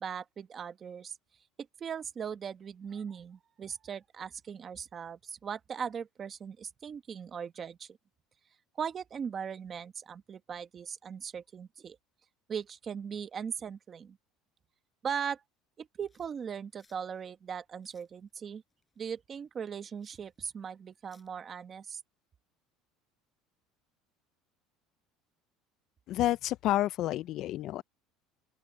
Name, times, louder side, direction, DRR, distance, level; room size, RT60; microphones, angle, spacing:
voice 1, 0.0-1.1 1.8-8.0 8.8-12.0 12.5-14.2 15.0-15.4 15.8-18.6 19.0-22.0, right 7 dB, 25° right, 1.1 m, -39 dB
sound 1, 16.1-21.3, left 3 dB, 10° left, 8.0 m, -70 dB
voice 2, 26.1-27.8, left 14 dB, 45° left, 0.4 m, -29 dB
open air
cardioid pair, 160°, 0 cm